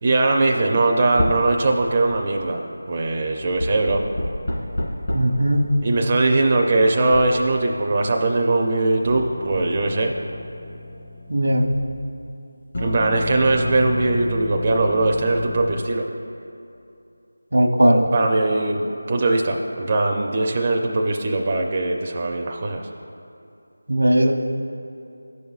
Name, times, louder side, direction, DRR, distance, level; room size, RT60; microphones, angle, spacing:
voice 1, 0.0-2.6 2.9-4.0 5.8-10.1 12.8-16.0 18.1-22.9, right 2 dB, 25° right, 1 dB, 0.4 m, -20 dB
sound 1, 1.2-1.5 1.8-2.4 3.3-12.1 12.7-15.7, left 1 dB, 50° left, 1.7 m, -31 dB
voice 2, 5.1-5.8 11.3-11.7 17.5-18.0 23.9-24.3, right 1 dB, 90° right, 4 dB, 0.9 m, -17 dB
15.0 x 5.3 x 2.4 m, 2.7 s
figure-of-eight pair, 175°, 0 cm